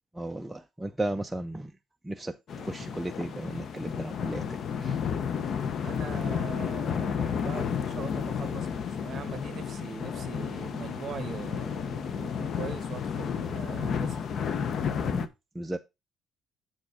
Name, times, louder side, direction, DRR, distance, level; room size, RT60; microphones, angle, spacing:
voice 1, 0.1-1.7 2.0-5.0 15.0-15.3 15.6-15.8, right 1 dB, 5° right, 0.4 m, -35 dB
sound 1, 2.5-15.3, left 7 dB, 50° left, 0.7 m, -32 dB
voice 2, 5.8-14.2, right 7 dB, 40° right, 1.1 m, -41 dB
7.4 x 5.1 x 4.7 m
cardioid pair, 145°, 0 cm